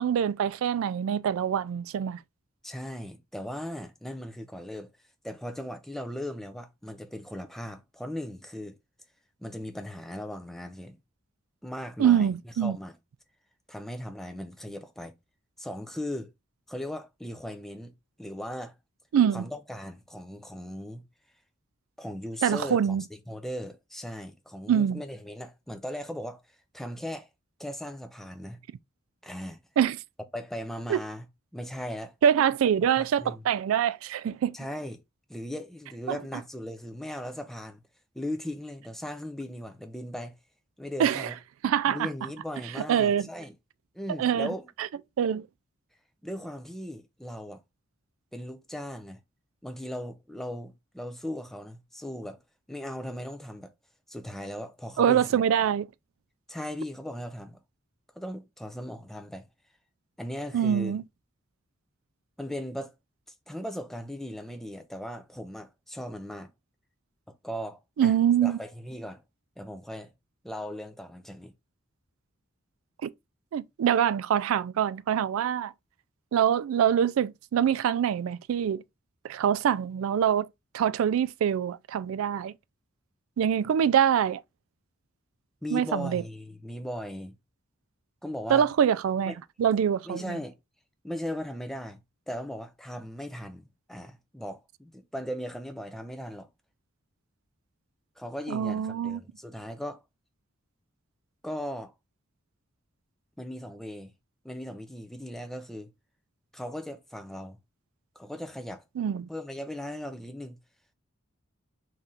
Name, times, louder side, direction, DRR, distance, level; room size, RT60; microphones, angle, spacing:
voice 1, 0.0-2.2 12.0-12.8 19.1-19.4 22.4-23.0 24.7-25.0 29.8-30.0 30.9-31.0 32.2-34.5 36.1-36.2 41.0-41.3 41.6-42.1 42.8-43.3 44.2-44.5 44.8-44.9 45.2-45.5 55.0-55.9 60.5-61.0 68.0-68.6 73.0-73.1 73.5-75.7 76.3-78.8 79.2-80.5 80.7-82.5 83.4-84.4 85.7-86.2 88.5-89.3 89.6-90.4 98.5-99.2 109.0-109.3, right 8 dB, 80° right, 0.3 m, -24 dB
voice 2, 2.6-4.9 5.2-8.8 9.4-11.0 11.6-12.9 13.7-15.1 15.6-16.3 16.7-17.9 18.2-18.8 19.3-21.0 22.0-26.4 26.7-27.3 27.6-28.6 29.2-29.6 30.3-31.3 31.5-32.1 33.0-33.4 34.5-35.0 35.3-37.8 38.1-40.4 40.8-41.4 41.9-43.5 43.9-44.7 46.2-47.6 48.3-49.2 49.6-52.4 52.7-53.7 54.1-55.2 56.5-57.6 58.2-59.5 60.2-61.0 62.4-62.9 63.5-66.5 67.4-68.1 68.4-69.2 69.6-70.1 70.4-71.5 85.6-87.4 88.2-88.7 89.3-89.4 90.0-90.6 91.0-92.0 92.3-96.5 98.2-100.0 101.4-101.9 103.4-104.1 104.4-105.9 106.5-107.6 108.2-108.8 109.3-110.6, equal, ahead, 0.5 m, -38 dB
3.1 x 2.8 x 3.7 m
head